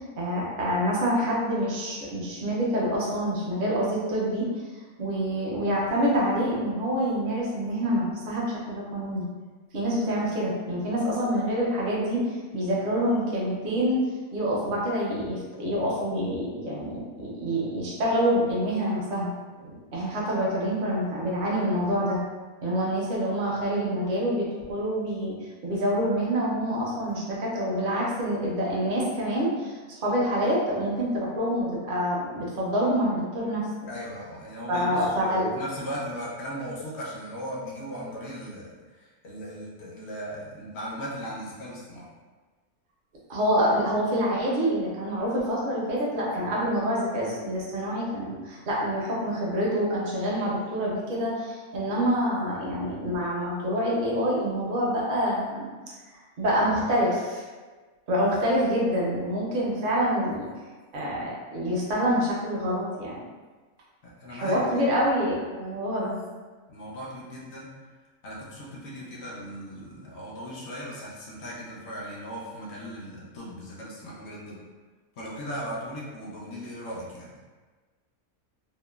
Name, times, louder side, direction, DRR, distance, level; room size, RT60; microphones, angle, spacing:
voice 1, 0.0-4.5 5.0-9.3 9.7-19.3 19.6-22.2 22.6-25.4 25.6-33.7 34.7-35.5 43.3-55.7 56.4-57.4 58.1-60.5 60.9-63.2 64.3-66.2, equal, 55° right, -5 dB, 0.6 m, -26 dB
voice 2, 33.9-42.1 64.0-64.9 66.7-67.7 68.2-74.6 75.2-77.3, equal, 65° left, -5 dB, 0.7 m, -38 dB
3.0 x 2.1 x 2.2 m, 1.4 s
omnidirectional pair, 1.6 m